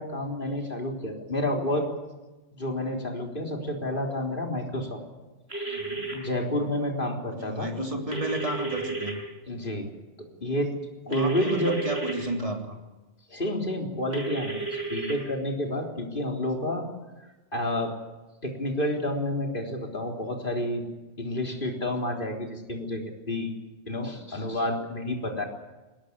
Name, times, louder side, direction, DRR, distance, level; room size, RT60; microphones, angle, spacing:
voice 1, 0.0-1.9 2.6-5.0 6.1-7.7 9.5-9.9 10.2-10.8 11.1-11.8 13.3-16.9 17.5-17.9 18.4-20.8 21.2-23.0 23.3-23.5 23.9-25.4, left 1 dB, 50° left, 2 dB, 3.9 m, -29 dB
sound 1, 5.5-6.1 8.1-9.1 11.1-12.1 14.1-15.1, right 3 dB, 65° right, 6.9 m, -32 dB
voice 2, 5.7-6.1 7.3-9.2 11.1-12.8, right 1 dB, 30° right, 2 dB, 3.5 m, -32 dB
21.0 x 19.0 x 9.8 m, 1.1 s
omnidirectional pair, 1.2 m